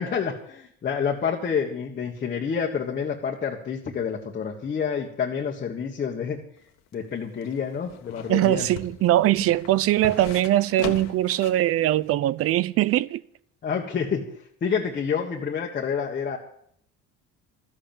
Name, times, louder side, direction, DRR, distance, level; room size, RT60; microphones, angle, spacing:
voice 1, 0.0-6.4 6.9-8.7 13.6-14.3 14.6-16.4, left 6 dB, 30° left, 1.5 m, -28 dB
sound 1, 6.6-11.7 12.0-12.1, left 8 dB, 65° left, 1.6 m, -40 dB
voice 2, 8.3-13.2, right 14 dB, 50° right, 0.6 m, -21 dB
13.5 x 8.1 x 8.8 m
cardioid pair, 135°, 29 cm